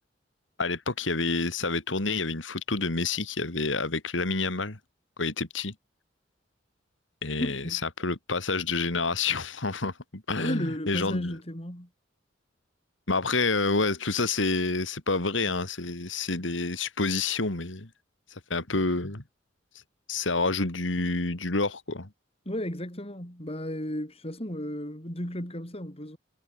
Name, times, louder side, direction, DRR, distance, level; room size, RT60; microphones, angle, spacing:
voice 1, 0.6-4.8 5.2-5.7 7.2-11.3 13.1-17.9 18.3-19.2 20.1-22.1, left 3 dB, 90° left, 2.7 m, -28 dB
voice 2, 7.4-7.8 10.4-11.9 22.5-26.2, equal, 30° left, 7.3 m, -34 dB
head